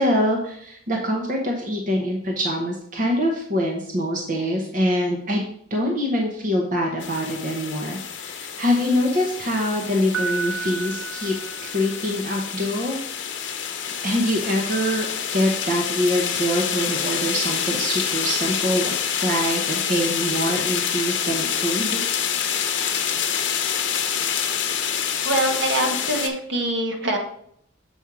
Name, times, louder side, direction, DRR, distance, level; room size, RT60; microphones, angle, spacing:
voice 1, 0.0-5.4 5.7-11.3 11.6-13.0 14.0-22.0, equal, 40° right, 0 dB, 0.9 m, -24 dB
sound 1, 7.0-26.3, left 8 dB, 60° left, 0.8 m, -27 dB
Piano, 10.1-12.2, right 5 dB, 80° right, 1.1 m, -32 dB
voice 2, 25.2-27.2, right 1 dB, 65° right, 2 dB, 1.3 m, -24 dB
7.3 x 4.4 x 4.8 m, 0.67 s
head